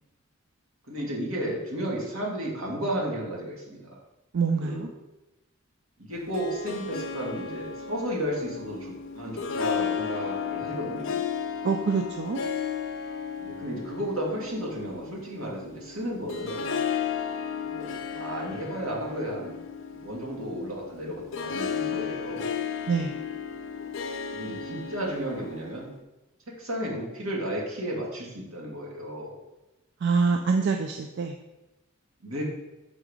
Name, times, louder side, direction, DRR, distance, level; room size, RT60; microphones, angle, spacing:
voice 1, 0.9-4.0 4.5-4.9 6.0-11.2 13.4-16.7 17.6-19.6 19.9-22.6 24.3-25.9 26.5-29.4 32.2-32.4, equal, 80° right, -3 dB, 2.0 m, -33 dB
voice 2, 4.3-4.9 11.6-12.4 22.9-23.1 30.0-31.3, right 5 dB, 55° right, 4 dB, 0.4 m, -25 dB
Harp, 6.1-26.0, left 6 dB, 65° left, 0.6 m, -34 dB
6.3 x 3.8 x 4.9 m, 1.0 s
head